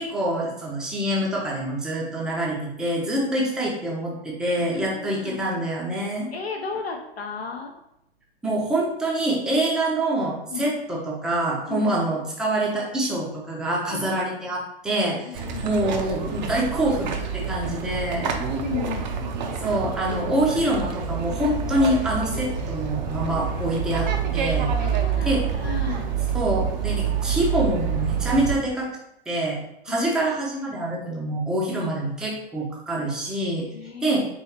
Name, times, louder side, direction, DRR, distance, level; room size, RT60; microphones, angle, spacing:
voice 1, 0.0-6.3 8.4-18.3 19.6-24.7 25.2-25.4 26.3-28.9 29.3-29.6 29.8-33.6 34.0-34.3, right 1 dB, ahead, -3 dB, 0.6 m, -25 dB
voice 2, 3.1-3.5 4.7-5.4 6.3-7.7 10.5-10.7 11.7-11.9 13.9-14.1 15.2-15.8 17.4-17.7 18.3-19.1 24.8-26.1 29.9-30.2 33.7-34.3, left 5 dB, 70° left, 1 dB, 0.7 m, -34 dB
sound 1, 15.3-28.6, right 6 dB, 45° right, 0.6 m, -27 dB
4.6 x 3.0 x 2.9 m, 0.80 s
figure-of-eight pair, 105°, 31 cm